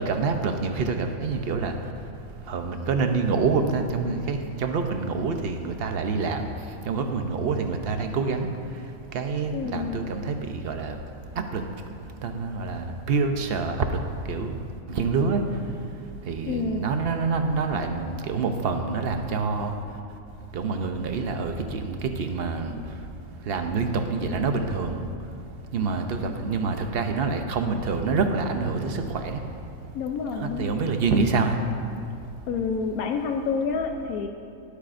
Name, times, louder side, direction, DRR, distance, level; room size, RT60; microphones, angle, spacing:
voice 1, 0.0-1.7 2.5-6.5 6.9-8.5 9.1-11.0 11.4-11.7 12.2-14.0 14.3-14.6 14.9-15.5 16.3-19.8 20.5-22.8 23.5-25.0 25.7-29.4 30.3-31.6, right 4 dB, 55° right, 6 dB, 0.8 m, -26 dB
voice 2, 9.5-10.0 16.4-16.9 29.9-30.9 32.5-34.3, left 5 dB, 85° left, 4 dB, 1.1 m, -28 dB
21.5 x 8.3 x 2.6 m, 2.5 s
omnidirectional pair, 1.5 m